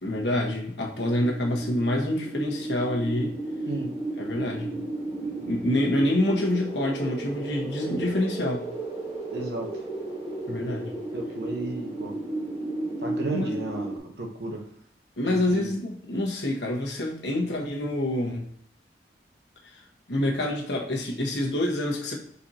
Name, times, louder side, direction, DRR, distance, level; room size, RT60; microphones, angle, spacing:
voice 1, 0.0-3.3 4.2-4.7 5.2-8.7 10.5-10.9 13.3-13.5 15.2-18.5 19.6-22.1, left 1 dB, 80° left, -1 dB, 1.2 m, -27 dB
sound 1, 0.9-14.0, right 2 dB, 30° right, 1.1 m, -33 dB
voice 2, 9.3-9.7 11.1-12.1 13.0-14.6 15.2-15.7, right 2 dB, 70° right, 1 dB, 1.0 m, -33 dB
4.6 x 4.1 x 2.8 m, 0.66 s
head